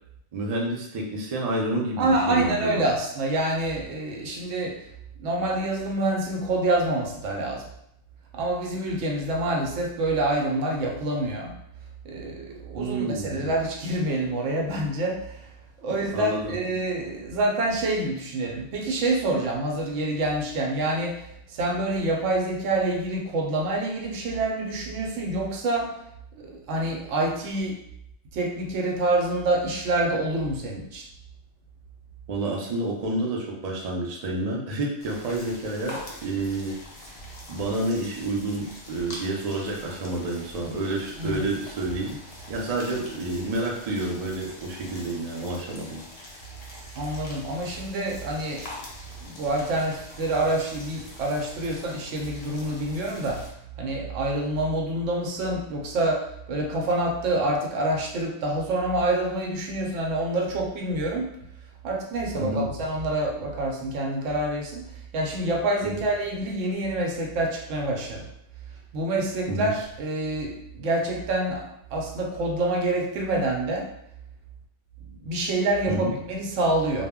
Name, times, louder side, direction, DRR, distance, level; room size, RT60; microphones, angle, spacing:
voice 1, 0.3-2.9 12.7-13.5 16.1-16.5 32.3-36.7 37.5-42.2 42.5-46.0 62.4-62.7 65.8-66.0 69.5-69.7 75.9-76.1, right 2 dB, 55° right, -1 dB, 0.4 m, -29 dB
voice 2, 2.0-4.8 5.2-7.6 8.3-11.6 12.0-15.5 15.8-25.9 26.3-27.8 28.3-31.1 41.2-41.5 47.0-48.9 49.2-53.4 53.8-61.4 61.8-68.3 68.9-73.9 75.2-77.1, right 2 dB, 80° right, 1 dB, 0.9 m, -27 dB
sound 1, 35.0-53.5, left 1 dB, 45° left, 0.5 m, -44 dB
2.1 x 2.0 x 3.5 m, 0.76 s
omnidirectional pair, 1.3 m